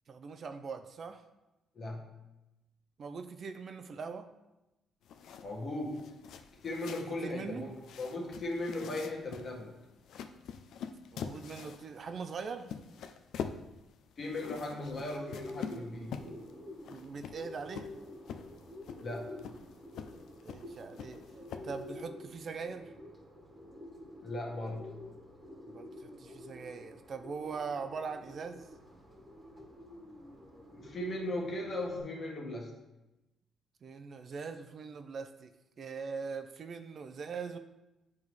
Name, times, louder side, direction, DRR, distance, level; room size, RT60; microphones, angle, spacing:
voice 1, 0.1-1.2 3.0-4.3 7.2-7.7 11.1-12.7 16.9-17.9 20.4-21.2 21.6-22.9 25.7-28.6 33.8-35.5 35.8-37.6, right 5 dB, 50° right, 8 dB, 0.5 m, -41 dB
voice 2, 1.7-2.1 5.4-6.2 6.6-9.9 14.2-16.2 19.0-19.4 24.2-25.0 30.7-32.8, left 1 dB, 45° left, -1 dB, 1.5 m, -38 dB
sound 1, 5.0-22.0, left 7 dB, 75° left, 0.4 m, -46 dB
Bird, 15.0-32.0, left 1 dB, 20° right, 1.5 m, -49 dB
8.5 x 3.5 x 3.2 m, 0.98 s
cardioid pair, 90°, 0 cm